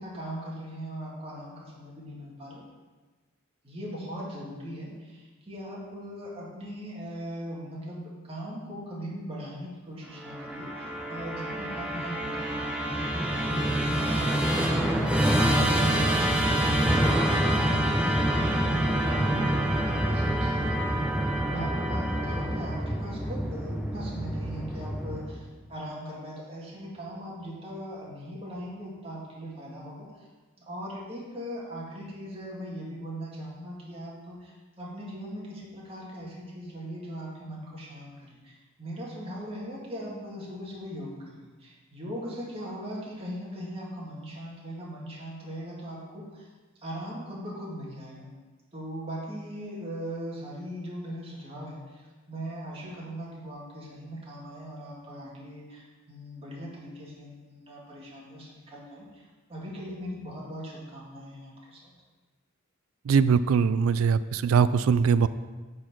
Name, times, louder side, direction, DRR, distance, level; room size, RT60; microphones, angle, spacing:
voice 1, 0.0-2.6 3.6-30.3 30.6-46.5 46.8-48.3 48.7-61.9, equal, 30° right, -5 dB, 2.0 m, -40 dB
Musical instrument, 10.1-25.5, right 1 dB, 5° right, 0.8 m, -26 dB
voice 2, 63.1-65.3, right 6 dB, 75° right, 15 dB, 0.3 m, -22 dB
8.6 x 4.2 x 6.0 m, 1.3 s
head